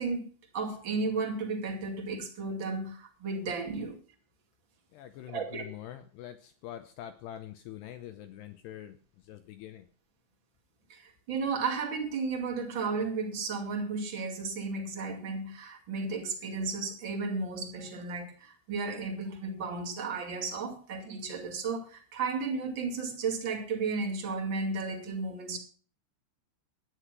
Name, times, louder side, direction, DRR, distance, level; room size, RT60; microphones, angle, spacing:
voice 1, 0.0-4.0 5.3-5.6 10.9-25.6, right 4 dB, 35° right, 2 dB, 2.0 m, -34 dB
voice 2, 4.9-9.9, left 11 dB, 85° left, 10 dB, 2.4 m, -45 dB
12.5 x 10.0 x 6.1 m, 0.43 s
omnidirectional pair, 5.8 m